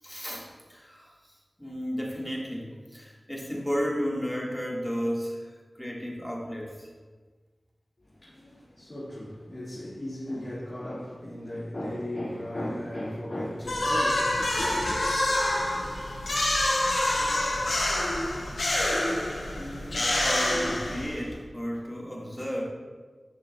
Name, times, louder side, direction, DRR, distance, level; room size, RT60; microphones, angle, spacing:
voice 1, 0.0-6.9 19.6-22.7, equal, 10° left, 1.8 m, -33 dB
voice 2, 8.0-15.0, left 1 dB, 50° left, 1.9 m, -36 dB
sound 1, 13.6-21.3, left 1 dB, 85° left, 1.3 m, -27 dB
10.5 x 6.0 x 2.3 m
cardioid pair, 40°, 0 cm